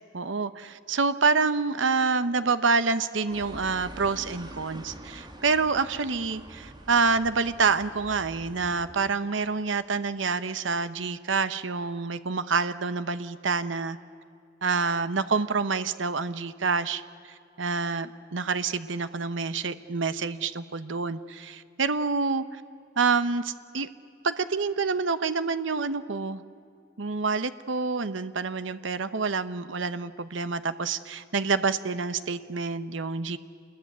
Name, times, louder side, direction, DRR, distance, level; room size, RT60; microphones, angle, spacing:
voice 1, 0.1-14.0 14.6-22.6 23.0-23.9 24.2-26.4 27.0-33.4, right 4 dB, 75° right, 12 dB, 0.9 m, -27 dB
sound 1, 3.3-9.1, right 1 dB, 25° right, 2.0 m, -45 dB
27.5 x 21.0 x 9.4 m, 2.4 s
head